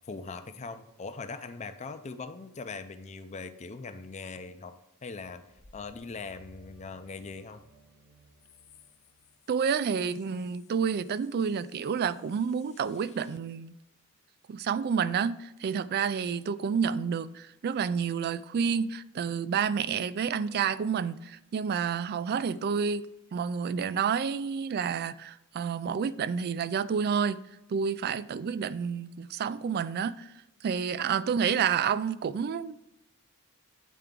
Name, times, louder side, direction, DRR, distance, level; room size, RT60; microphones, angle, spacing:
voice 1, 0.1-4.8 5.0-5.4 5.7-7.6, left 4 dB, 30° left, 0.5 m, -41 dB
sound 1, 5.1-9.8, right 2 dB, 85° right, 2.4 m, -59 dB
voice 2, 9.5-13.7 14.5-23.0 23.3-27.4 27.7-30.3 30.6-32.8, right 6 dB, 45° right, 0.3 m, -29 dB
9.2 x 4.5 x 3.7 m
head